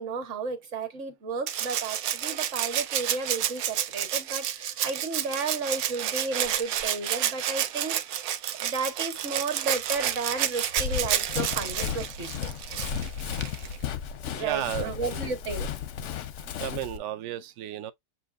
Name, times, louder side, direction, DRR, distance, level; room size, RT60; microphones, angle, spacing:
voice 1, 0.0-8.3 8.6-12.5 14.4-15.7, right 4 dB, 50° right, 1.5 m, -33 dB
Rattle (instrument), 1.5-13.8 15.2-15.3, right 10 dB, 65° right, 1.0 m, -30 dB
Run, 10.8-17.0, left 8 dB, 65° left, 0.7 m, -34 dB
voice 2, 14.3-15.4 16.6-17.9, right 12 dB, 85° right, 0.6 m, -34 dB
7.3 x 2.6 x 2.4 m
omnidirectional pair, 1.9 m